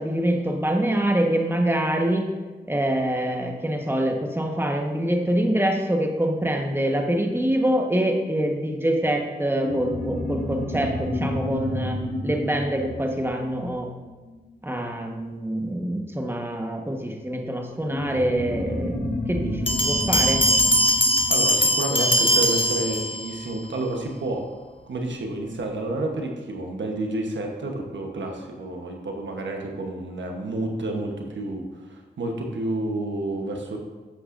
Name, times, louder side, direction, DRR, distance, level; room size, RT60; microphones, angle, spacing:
voice 1, 0.0-2.3 2.7-13.9 14.6-20.4, right 1 dB, 10° right, 2 dB, 1.3 m, -25 dB
sound 1, 9.5-14.5 17.8-22.7, left 1 dB, 65° left, 2.0 m, -31 dB
sound 2, 19.7-23.4, equal, 30° left, 1.0 m, -21 dB
voice 2, 21.3-24.4 24.9-33.8, right 2 dB, 90° right, 2 dB, 1.1 m, -30 dB
12.0 x 8.4 x 2.6 m, 1.3 s
cardioid pair, 45°, 19 cm